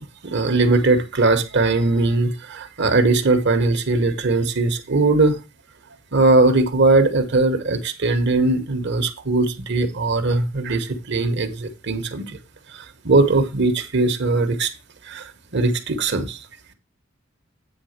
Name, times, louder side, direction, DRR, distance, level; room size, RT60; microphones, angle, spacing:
voice 1, 0.2-5.4 6.1-12.3 12.7-14.7 15.1-16.4, right 3 dB, 60° right, 1.2 m, -20 dB
9.1 x 3.8 x 6.5 m
head